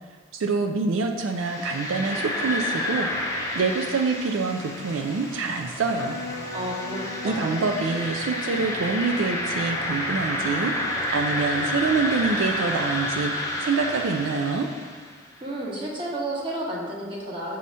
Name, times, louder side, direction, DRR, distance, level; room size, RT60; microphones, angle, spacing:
voice 1, 0.3-6.2 7.2-10.7 11.1-13.3 13.6-14.7, right 4 dB, 75° right, 3 dB, 0.4 m, -26 dB
sound 1, 1.2-15.2, left 1 dB, 15° left, 0.8 m, -30 dB
Electric guitar, 6.0-12.0, left 3 dB, 70° left, 0.6 m, -39 dB
voice 2, 6.5-7.6 15.4-17.6, right 1 dB, 25° right, -4 dB, 1.1 m, -31 dB
6.1 x 2.8 x 5.4 m, 1.4 s
head